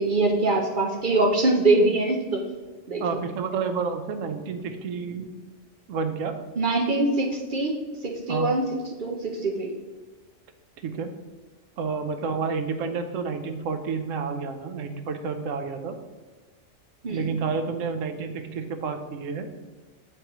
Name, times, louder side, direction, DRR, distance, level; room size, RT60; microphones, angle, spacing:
voice 1, 0.0-2.4 2.9-3.0 6.6-7.8 8.0-8.6 9.0-9.7 17.0-17.4, right 2 dB, 50° right, 1 dB, 0.7 m, -23 dB
voice 2, 3.0-5.3 5.9-6.4 8.3-8.5 10.8-11.1 11.8-15.9 17.1-19.5, right 5 dB, 75° right, 7 dB, 1.0 m, -30 dB
7.9 x 4.6 x 3.0 m, 1.3 s
omnidirectional pair, 1.3 m